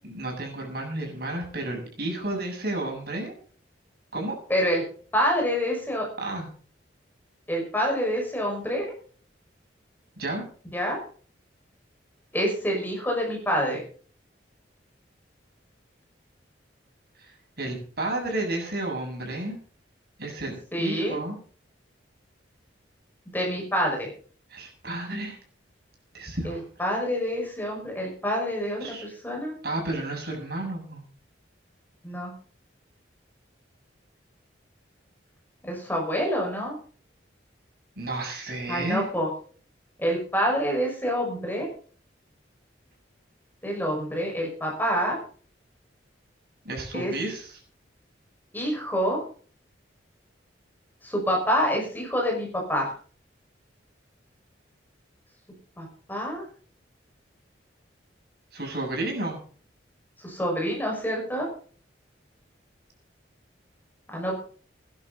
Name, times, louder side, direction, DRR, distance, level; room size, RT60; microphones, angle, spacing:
voice 1, 0.0-3.3 4.1-4.4 6.2-6.5 10.2-10.4 17.6-19.6 20.2-21.3 24.5-25.4 26.1-26.6 28.8-29.1 29.6-31.0 38.0-39.1 46.6-47.6 58.5-59.4, right 2 dB, 55° right, 1 dB, 7.4 m, -32 dB
voice 2, 4.5-4.8 5.1-6.1 7.5-8.9 10.7-11.0 12.3-13.8 20.7-21.2 23.3-24.1 26.4-29.5 32.0-32.3 35.6-36.8 38.7-39.3 40.0-41.7 43.6-45.2 46.9-47.1 48.5-49.2 51.0-52.9 55.8-56.4 60.2-61.5 64.1-64.3, equal, 10° left, 0 dB, 5.7 m, -27 dB
20.5 x 11.5 x 4.2 m, 0.43 s
head